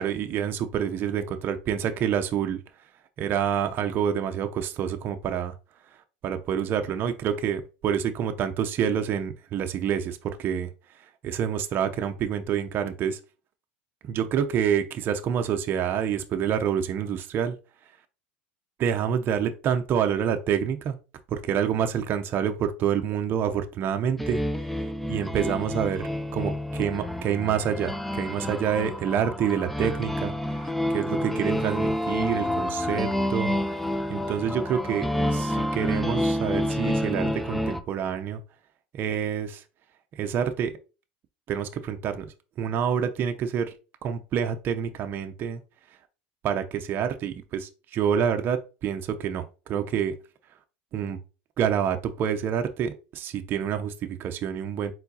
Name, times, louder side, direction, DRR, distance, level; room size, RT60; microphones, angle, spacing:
voice 1, 0.0-2.6 3.2-5.5 6.2-10.7 11.2-13.2 14.1-17.5 18.8-20.9 21.3-24.4 25.1-26.0 26.3-33.5 34.1-38.4 38.9-39.6 40.1-40.8 41.5-42.3 42.6-43.7 44.0-45.6 46.4-50.1 50.9-51.2 51.6-54.9, right 8 dB, 45° right, 0.6 m, -27 dB
sound 1, 24.2-37.8, left 1 dB, 5° left, 0.5 m, -28 dB
4.4 x 3.9 x 2.7 m
supercardioid pair, 100°, 5 cm